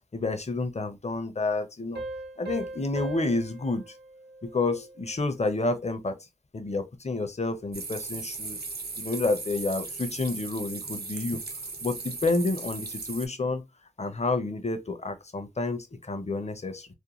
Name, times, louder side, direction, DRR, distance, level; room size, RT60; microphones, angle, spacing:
voice 1, 0.1-2.0 2.4-3.9 4.4-6.2 6.5-8.6 9.0-11.4 11.8-13.6 14.0-16.9, left 3 dB, 40° left, 0.5 m, -29 dB
Piano, 2.0-5.2, right 2 dB, 80° right, 0.9 m, -40 dB
sound 1, 7.7-13.3, right 4 dB, 60° right, 0.5 m, -37 dB
2.5 x 2.1 x 2.9 m
wide cardioid pair, 55°, 18 cm